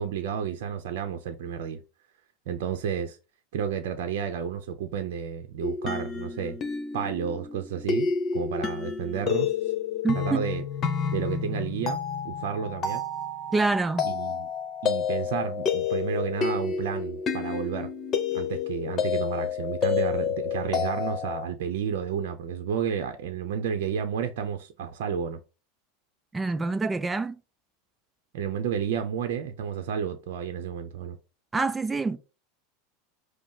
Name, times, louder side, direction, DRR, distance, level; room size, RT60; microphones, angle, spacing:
voice 1, 0.0-1.8 2.5-3.2 3.5-6.6 6.9-9.5 10.1-10.6 11.1-12.0 12.2-13.0 14.0-14.5 14.8-17.9 18.3-25.4 28.3-31.2, right 8 dB, 70° right, 0.6 m, -31 dB
sound 1, 5.6-21.5, left 6 dB, 35° left, 0.9 m, -30 dB
voice 2, 10.0-10.4 13.5-14.1 26.3-27.4 31.5-32.2, right 3 dB, 15° right, 0.5 m, -26 dB
5.3 x 2.0 x 4.7 m
hypercardioid pair, 105°, 0 cm